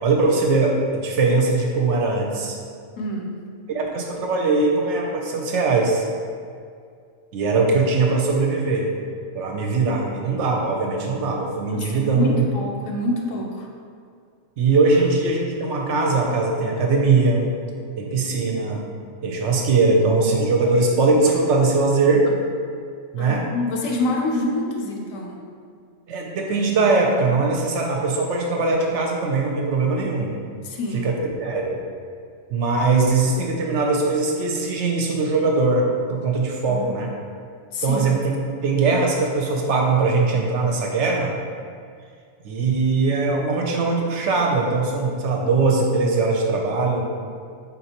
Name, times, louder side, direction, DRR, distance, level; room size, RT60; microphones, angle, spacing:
voice 1, 0.0-2.6 3.7-6.1 7.3-8.9 9.3-12.4 14.6-17.5 18.0-18.8 19.2-22.3 23.1-23.4 26.1-30.3 30.9-31.8 32.5-37.1 37.8-41.4 42.4-47.1, right 3 dB, 70° right, 0 dB, 0.8 m, -21 dB
voice 2, 3.0-3.5 11.7-13.7 23.2-25.4 30.6-31.1 36.6-36.9 37.7-38.1, left 2 dB, 80° left, 0 dB, 1.0 m, -27 dB
4.2 x 3.9 x 2.8 m, 2.2 s
omnidirectional pair, 1.3 m